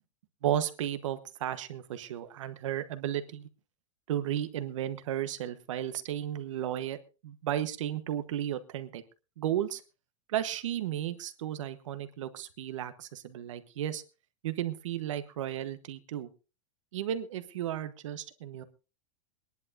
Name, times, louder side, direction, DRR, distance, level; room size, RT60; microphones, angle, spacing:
voice 1, 0.4-3.5 4.1-9.0 9.4-9.8 10.3-14.0 14.4-16.3 16.9-18.6, right 11 dB, 75° right, 11 dB, 1.2 m, -34 dB
23.5 x 11.0 x 2.6 m, 0.31 s
supercardioid pair, 180°, 16 cm